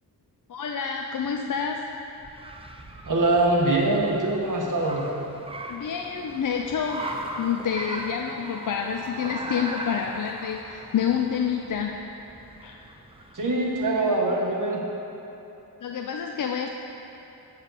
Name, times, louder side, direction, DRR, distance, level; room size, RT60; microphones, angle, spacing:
voice 1, 0.5-1.8 5.7-7.1 7.4-12.0 12.6-12.8 15.8-16.7, left 7 dB, 50° left, 2 dB, 0.4 m, -28 dB
Car, 1.2-14.1, right 1 dB, 15° right, 0.5 m, -39 dB
voice 2, 3.0-5.0 13.3-14.8, right 2 dB, 50° right, -1 dB, 1.2 m, -23 dB
7.9 x 7.1 x 4.1 m, 3.0 s
wide cardioid pair, 85°, 40 cm